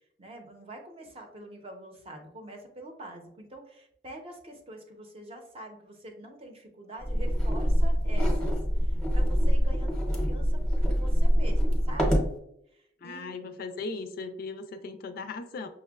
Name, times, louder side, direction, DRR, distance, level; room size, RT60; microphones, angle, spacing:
voice 1, 0.2-12.3 12.7-13.3, right 1 dB, 35° right, 3 dB, 0.6 m, -45 dB
sound 1, 7.0-12.3, equal, 5° left, 0.7 m, -24 dB
voice 2, 13.0-15.7, left 3 dB, 55° left, 8 dB, 0.3 m, -37 dB
5.8 x 2.1 x 2.3 m, 0.75 s
head